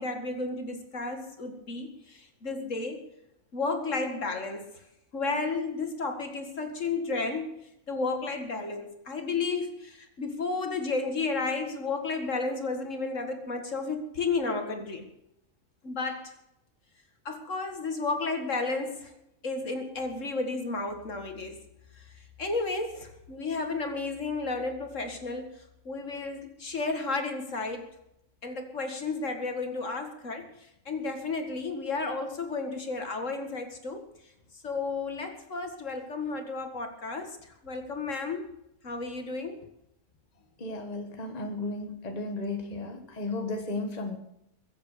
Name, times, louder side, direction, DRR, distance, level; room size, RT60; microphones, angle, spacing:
voice 1, 0.0-1.9 2.4-3.0 3.5-4.6 5.1-7.6 7.9-15.1 15.8-16.3 17.3-19.1 19.4-21.6 22.4-25.5 25.9-27.9 28.4-30.4 30.9-34.0 34.6-37.3 37.6-38.5 38.8-39.6, left 3 dB, 60° left, 5 dB, 2.3 m, -32 dB
voice 2, 40.6-44.2, left 2 dB, 30° left, 4 dB, 1.6 m, -34 dB
22.0 x 8.1 x 6.6 m, 0.81 s
omnidirectional pair, 1.5 m